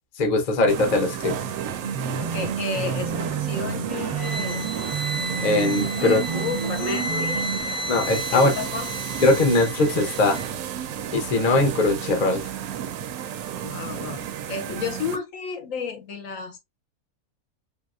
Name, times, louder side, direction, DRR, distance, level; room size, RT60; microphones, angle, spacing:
voice 1, 0.2-1.4 5.4-6.2 7.9-8.5 9.2-10.4 11.1-12.5, left 2 dB, 50° left, 0.5 m, -21 dB
sound 1, 0.7-15.2, right 9 dB, 75° right, 1.0 m, -32 dB
sound 2, 1.8-7.6, right 6 dB, 45° right, 0.7 m, -30 dB
voice 2, 2.2-4.7 5.8-7.5 8.3-9.1 13.6-16.6, left 6 dB, 65° left, 0.9 m, -32 dB
sound 3, 4.1-10.5, equal, 20° left, 1.0 m, -33 dB
3.3 x 2.8 x 2.4 m
omnidirectional pair, 1.7 m